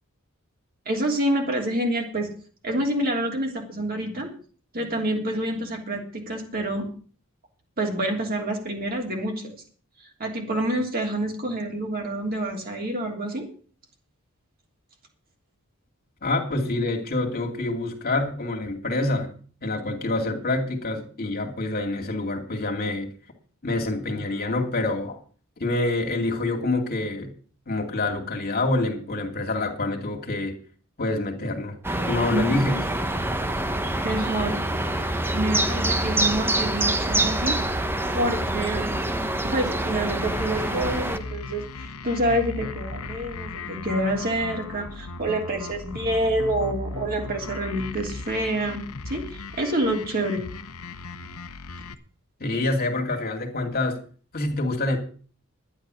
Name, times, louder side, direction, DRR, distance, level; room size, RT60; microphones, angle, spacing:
voice 1, 0.8-2.3 2.6-4.3 4.7-6.9 7.8-9.5 10.0-13.5 32.3-32.8 34.0-34.6 35.3-37.6 38.1-39.0 39.4-50.5, right 1 dB, 45° right, 1 dB, 3.1 m, -27 dB
voice 2, 16.2-19.3 19.6-23.1 23.6-25.2 25.6-27.3 27.7-30.5 31.0-31.8 32.0-32.8 52.4-54.0 54.3-55.0, left 2 dB, 45° left, 2 dB, 2.5 m, -26 dB
sound 1, 31.8-41.2, right 1 dB, 10° right, 0.9 m, -26 dB
sound 2, 39.9-51.9, left 3 dB, 75° left, 1.0 m, -37 dB
11.5 x 10.0 x 6.4 m, 0.42 s
head